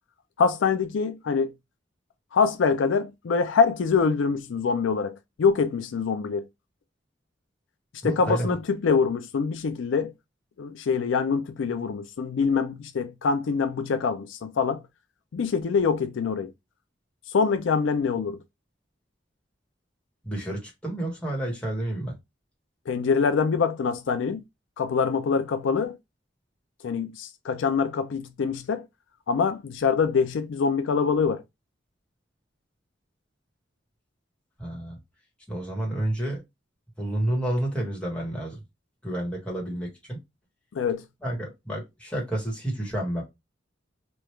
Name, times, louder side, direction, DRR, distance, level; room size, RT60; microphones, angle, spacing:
voice 1, 0.4-1.5 2.3-6.5 8.0-10.1 10.6-14.8 15.3-16.5 17.3-18.4 22.9-24.4 24.8-26.0 26.8-28.8 29.3-31.4 40.7-41.0, left 5 dB, 75° left, 0.4 m, -24 dB
voice 2, 8.0-8.6 20.2-22.1 34.6-35.0 35.5-36.4 37.0-38.6 39.0-40.2 41.2-43.3, right 1 dB, 5° left, 1.2 m, -30 dB
3.1 x 2.3 x 3.1 m
head